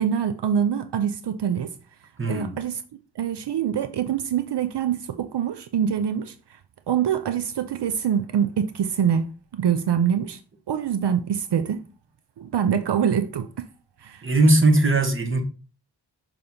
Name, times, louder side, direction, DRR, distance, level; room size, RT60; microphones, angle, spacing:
voice 1, 0.0-1.7 2.3-2.8 3.2-6.3 6.9-10.4 10.7-11.8 12.4-13.6 14.0-14.2, right 8 dB, 75° right, 0.6 m, -24 dB
voice 2, 2.2-2.5 14.2-15.4, right 2 dB, 30° right, 1.2 m, -19 dB
6.7 x 3.0 x 5.4 m
wide cardioid pair, 100°, 41 cm